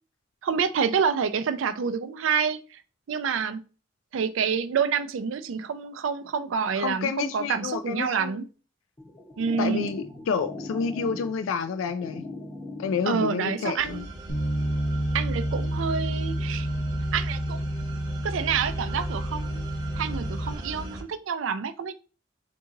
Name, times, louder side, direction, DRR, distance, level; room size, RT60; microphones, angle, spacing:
voice 1, 0.4-2.8 3.1-3.6 4.1-8.5 9.4-9.9 13.1-14.0 15.1-16.7 17.1-17.6 18.2-19.7 20.0-21.9, right 6 dB, 80° right, 0.4 m, -28 dB
voice 2, 6.8-8.4 9.6-12.3 12.8-14.0, left 6 dB, 90° left, 0.3 m, -29 dB
sound 1, 9.0-14.0, left 2 dB, 20° left, 0.6 m, -40 dB
sound 2, 13.8-21.0, right 1 dB, 20° right, 0.8 m, -39 dB
Bass guitar, 14.3-20.5, right 1 dB, 65° left, 1.1 m, -29 dB
3.8 x 2.7 x 3.8 m
head